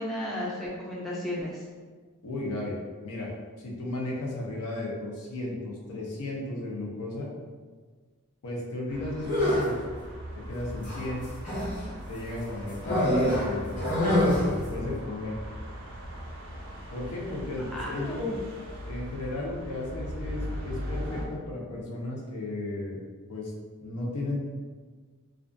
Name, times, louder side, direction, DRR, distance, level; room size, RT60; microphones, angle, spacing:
voice 1, 0.0-1.6 17.6-18.4, left 1 dB, ahead, -6 dB, 0.3 m, -34 dB
voice 2, 2.2-7.3 8.4-9.8 10.3-11.3 12.1-15.4 16.9-18.2 18.8-23.0 23.3-23.5 23.8-24.4, left 2 dB, 85° left, -3 dB, 0.6 m, -35 dB
sound 1, 8.9-21.3, equal, 70° right, 0.5 m, -39 dB
sound 2, 9.2-9.8 10.8-11.8 12.8-14.6, left 1 dB, 35° left, 0.8 m, -25 dB
2.4 x 2.3 x 2.5 m, 1.5 s
head